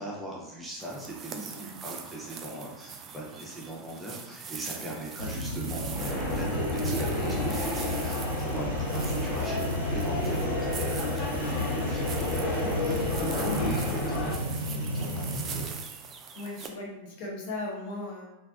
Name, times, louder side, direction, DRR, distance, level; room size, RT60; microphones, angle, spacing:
voice 1, 0.0-13.1 13.4-15.7, right 1 dB, 5° right, -5 dB, 0.8 m, -40 dB
sound 1, 0.8-16.7, right 6 dB, 25° right, 0.3 m, -43 dB
voice 2, 1.3-1.7 4.7-4.9 12.6-13.4 16.3-18.4, left 2 dB, 45° left, -2 dB, 0.8 m, -39 dB
sound 2, 5.2-15.6, left 1 dB, 90° left, 0.6 m, -32 dB
sound 3, 5.9-14.3, left 1 dB, 20° left, 1.1 m, -31 dB
3.3 x 2.5 x 2.4 m, 1.0 s
figure-of-eight pair, 90°, 0 cm